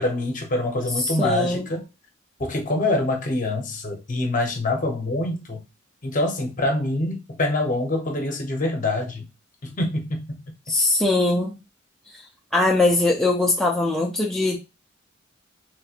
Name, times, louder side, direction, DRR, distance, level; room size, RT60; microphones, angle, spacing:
voice 1, 0.0-1.9 2.4-5.6 6.0-9.3 9.6-10.4, left 2 dB, 40° left, 0.9 m, -25 dB
voice 2, 1.2-1.7 10.7-11.6 12.5-14.6, left 2 dB, 5° left, 0.4 m, -21 dB
3.2 x 3.2 x 2.4 m
head